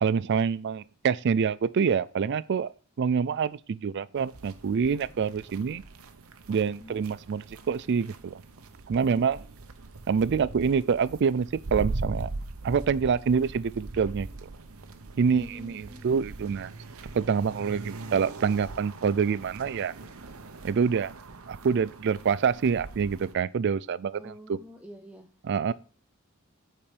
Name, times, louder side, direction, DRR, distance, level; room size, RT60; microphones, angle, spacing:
voice 1, 0.0-2.7 3.0-5.8 6.5-8.4 8.9-9.4 10.1-12.3 12.6-14.3 15.2-16.7 17.1-19.9 20.6-21.1 21.5-24.6 25.4-25.7, right 6 dB, 55° right, 0.4 m, -26 dB
sound 1, 4.2-23.3, right 3 dB, 75° right, 0.8 m, -41 dB
voice 2, 6.7-7.0 15.3-16.3 24.2-25.3, equal, 5° right, 0.6 m, -46 dB
8.7 x 4.4 x 4.9 m
head